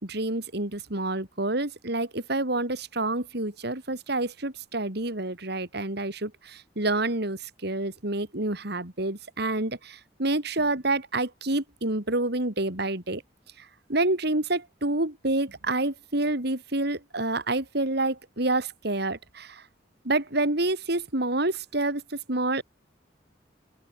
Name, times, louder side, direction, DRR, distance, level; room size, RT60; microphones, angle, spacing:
voice 1, 0.0-13.2 13.9-19.6 20.0-22.6, right 2 dB, 60° right, 3.9 m, -28 dB
open air
head